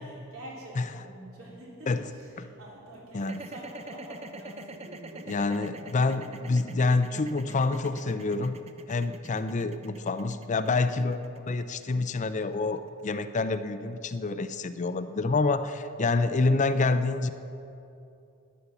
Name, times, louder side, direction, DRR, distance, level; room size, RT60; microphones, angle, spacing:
voice 1, 0.0-5.4, right 1 dB, 80° right, -4 dB, 3.7 m, -46 dB
sound 1, 3.2-13.4, right 1 dB, 30° right, 0.6 m, -44 dB
voice 2, 5.3-8.6 8.9-17.3, left 3 dB, 35° left, 11 dB, 0.5 m, -27 dB
12.5 x 10.0 x 6.9 m, 2.7 s
head